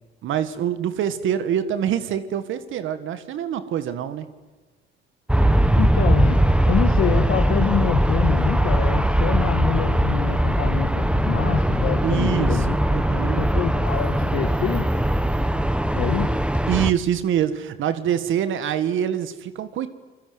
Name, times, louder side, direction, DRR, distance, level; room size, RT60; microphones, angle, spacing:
voice 1, 0.2-4.3 12.0-13.4 16.7-19.9, right 9 dB, 80° right, 12 dB, 1.6 m, -25 dB
Aircraft, 5.3-16.9, right 1 dB, 5° right, 1.4 m, -20 dB
voice 2, 5.8-12.8 13.4-14.9 15.9-16.4, left 10 dB, 90° left, 5 dB, 1.7 m, -26 dB
28.5 x 21.0 x 9.6 m, 1.3 s
cardioid pair, 90°, 20 cm